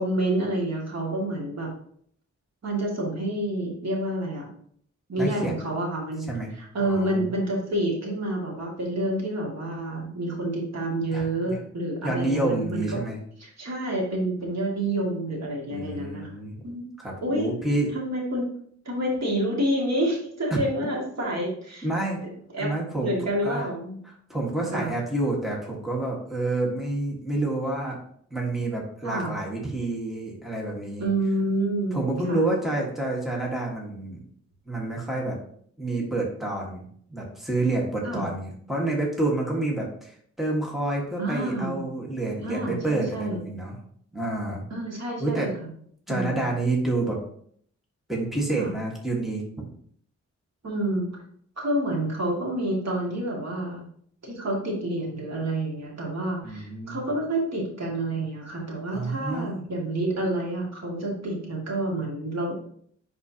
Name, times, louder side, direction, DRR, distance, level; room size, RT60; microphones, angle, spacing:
voice 1, 0.0-1.7 2.6-4.5 5.1-6.3 6.5-13.0 13.4-16.4 16.6-16.9 17.2-17.5 17.9-18.5 18.9-21.9 22.5-22.7 23.0-24.0 24.7-24.9 29.0-29.4 31.0-32.5 38.0-38.2 41.2-41.8 42.4-43.4 44.7-45.5 46.1-46.4 48.6-48.7 50.6-51.1 51.6-53.9 54.2-62.5, right 1 dB, 65° right, -2 dB, 2.2 m, -28 dB
voice 2, 5.2-5.6 6.3-6.5 6.8-7.3 11.1-11.6 12.0-13.2 15.7-16.6 17.0-17.9 20.5-20.6 21.8-22.2 22.6-23.1 23.4-23.6 24.3-28.0 28.3-31.1 31.9-34.2 34.7-35.4 35.8-36.8 37.1-43.8 44.1-44.6 45.2-45.5 46.1-47.2 48.1-49.4 56.4-57.0 58.9-59.6, right 2 dB, ahead, -2 dB, 1.6 m, -28 dB
10.0 x 4.2 x 2.9 m, 0.62 s
wide cardioid pair, 140°, 29 cm